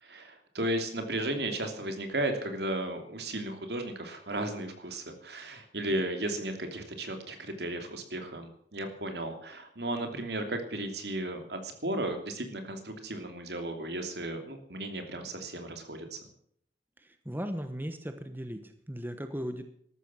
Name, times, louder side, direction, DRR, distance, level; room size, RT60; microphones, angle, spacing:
voice 1, 0.0-16.2, right 1 dB, 65° right, 6 dB, 2.9 m, -35 dB
voice 2, 17.0-19.7, equal, 10° right, 8 dB, 1.1 m, -37 dB
14.0 x 13.0 x 6.2 m, 0.64 s
head